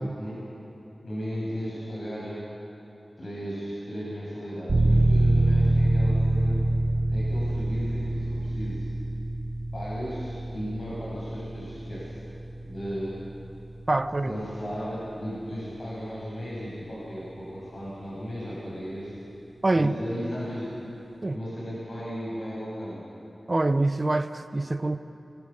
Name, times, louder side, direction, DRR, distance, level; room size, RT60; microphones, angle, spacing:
voice 1, 1.0-2.5 3.2-6.6 7.1-8.9 9.7-12.1 12.6-13.2 14.2-19.1 19.7-20.8 21.3-23.0, equal, 60° left, -7 dB, 7.8 m, -35 dB
sound 1, 4.7-15.2, right 1 dB, 55° right, 2.4 m, -26 dB
voice 2, 13.9-14.3 19.6-19.9 21.2-21.4 23.5-25.0, right 2 dB, 35° right, 9 dB, 1.0 m, -25 dB
26.0 x 23.5 x 7.3 m, 2.9 s
wide cardioid pair, 100°, 0 cm